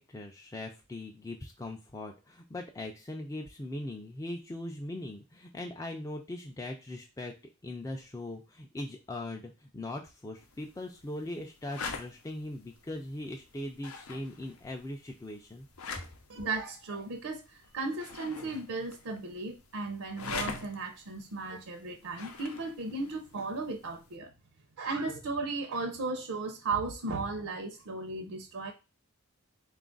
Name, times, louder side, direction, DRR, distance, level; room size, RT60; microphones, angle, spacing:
voice 1, 0.0-7.3 7.6-15.7, left 1 dB, 15° left, 2 dB, 0.3 m, -40 dB
sound 1, 10.4-24.2, left 5 dB, 90° left, 0.6 m, -45 dB
voice 2, 16.3-17.4 17.7-24.3 24.8-28.7, right 3 dB, 75° right, 5 dB, 0.6 m, -35 dB
3.9 x 2.4 x 3.7 m, 0.28 s
head